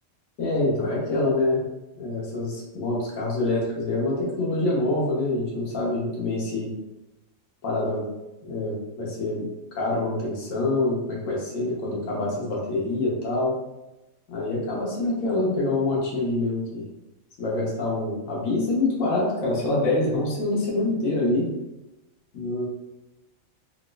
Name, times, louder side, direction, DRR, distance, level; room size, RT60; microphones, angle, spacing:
voice 1, 0.4-1.6 2.0-6.7 7.6-8.0 8.4-13.5 14.3-16.8 17.4-21.5 22.3-22.7, left 2 dB, 70° left, -4 dB, 1.3 m, -26 dB
4.0 x 2.3 x 2.3 m, 0.98 s
omnidirectional pair, 1.5 m